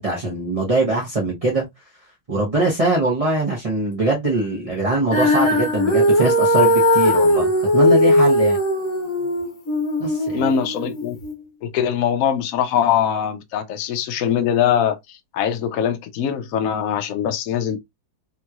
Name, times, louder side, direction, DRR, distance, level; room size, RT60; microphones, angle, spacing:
voice 1, 0.0-1.7 2.3-8.6 10.0-10.4, right 2 dB, 40° right, 0.5 m, -22 dB
Female singing, 5.1-11.3, left 1 dB, 50° left, 1.1 m, -18 dB
voice 2, 10.3-11.2 11.6-15.0 15.3-17.8, left 8 dB, 80° left, 0.7 m, -22 dB
3.5 x 2.9 x 2.3 m
omnidirectional pair, 2.1 m